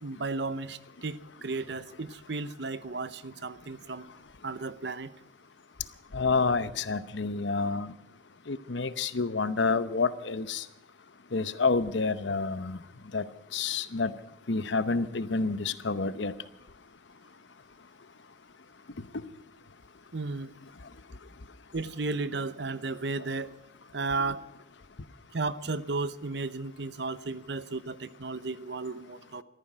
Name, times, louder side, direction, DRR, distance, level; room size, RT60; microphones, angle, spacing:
voice 1, 0.0-4.1 4.4-5.1 20.1-20.5 21.7-23.6 23.9-24.4 25.3-29.4, right 3 dB, 65° right, 15 dB, 0.8 m, -34 dB
voice 2, 6.1-7.9 8.5-10.6 11.3-12.8 13.1-13.2 13.5-14.1 14.5-16.3, left 4 dB, 80° left, 14 dB, 0.9 m, -28 dB
15.5 x 13.5 x 6.2 m, 0.87 s
head